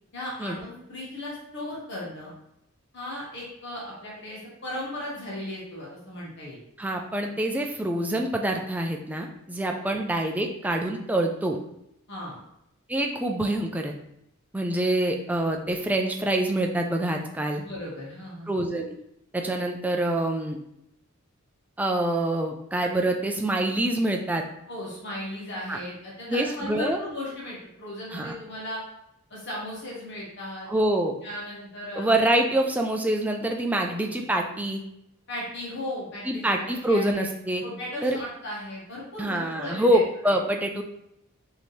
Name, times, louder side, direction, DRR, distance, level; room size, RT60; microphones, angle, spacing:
voice 1, 0.1-2.3 2.9-6.6 9.8-10.0 12.1-12.4 17.5-18.6 24.7-28.8 29.3-30.7 31.2-32.1 33.8-33.9 35.3-37.2 37.6-40.3, left 1 dB, 55° left, -5 dB, 1.4 m, -36 dB
voice 2, 6.8-11.6 12.9-13.9 14.5-17.6 18.5-19.0 19.3-20.6 21.8-24.4 25.7-25.8 26.3-27.0 28.1-28.4 30.7-31.2 31.9-34.8 36.2-37.6 38.0-38.2 39.2-40.8, right 1 dB, 5° right, 2 dB, 0.4 m, -26 dB
5.3 x 2.9 x 3.2 m, 0.80 s
head